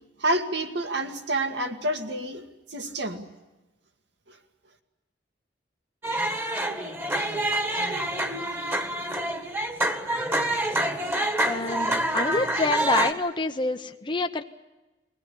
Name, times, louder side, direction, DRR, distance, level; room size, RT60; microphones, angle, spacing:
voice 1, 0.2-2.4 2.7-3.3, right 1 dB, 65° right, 6 dB, 2.2 m, -28 dB
sound 1, 6.0-13.1, right 1 dB, 15° right, 1.7 m, -27 dB
voice 2, 11.4-14.4, left 3 dB, 25° left, 6 dB, 0.8 m, -27 dB
23.0 x 17.5 x 9.9 m, 1.1 s
head